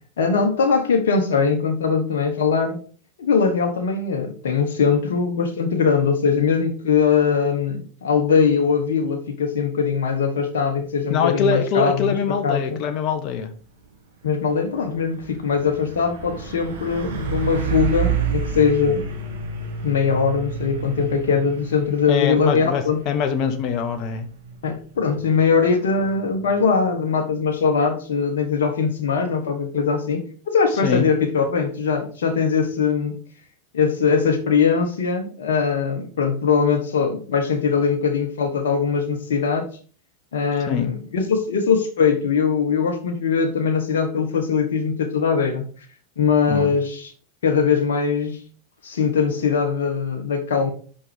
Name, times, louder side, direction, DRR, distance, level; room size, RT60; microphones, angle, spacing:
voice 1, 0.2-2.8 3.2-12.8 14.2-19.0 19.8-23.0 24.6-33.2 33.7-39.7 40.3-45.7 46.2-47.1 47.4-48.4 48.8-50.7, left 6 dB, 75° left, 4 dB, 1.4 m, -21 dB
voice 2, 11.1-13.5 22.1-24.3 30.8-31.1 40.7-40.9 46.5-46.7, left 6 dB, 50° left, 7 dB, 1.3 m, -23 dB
Truck, 13.7-13.9 14.3-26.8, right 6 dB, 75° right, 1.9 m, -31 dB
6.3 x 5.6 x 5.1 m, 0.42 s
hypercardioid pair, 95°, 0 cm